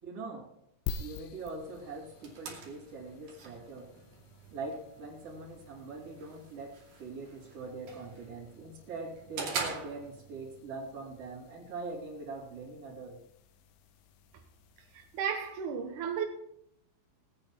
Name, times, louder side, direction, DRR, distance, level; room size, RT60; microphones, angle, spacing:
voice 1, 0.0-0.5 1.0-3.9 4.5-13.2, right 3 dB, 35° right, 3.9 m, -42 dB
sound 1, 0.9-15.6, left 6 dB, 80° left, 2.5 m, -49 dB
sound 2, 1.6-10.6, right 5 dB, 55° right, 3.8 m, -44 dB
voice 2, 14.9-16.3, right 7 dB, 80° right, 1.8 m, -34 dB
19.5 x 8.7 x 4.4 m
omnidirectional pair, 5.1 m